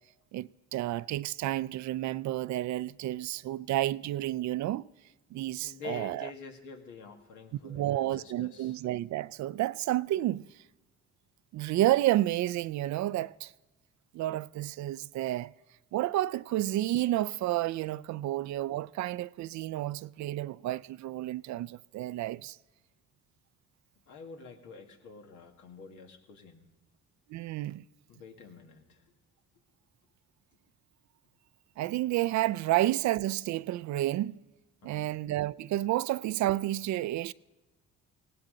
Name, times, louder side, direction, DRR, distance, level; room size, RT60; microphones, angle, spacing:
voice 1, 0.3-4.9 5.3-6.3 7.6-10.4 11.5-13.5 14.1-15.5 15.9-22.6 27.3-27.8 31.8-34.3 34.8-37.3, right 15 dB, 70° right, 0.4 m, -30 dB
voice 2, 5.3-8.8 24.1-26.7 28.1-29.0 34.8-35.1, left 5 dB, 85° left, 2.0 m, -47 dB
18.0 x 17.5 x 3.9 m
cardioid pair, 100°, 29 cm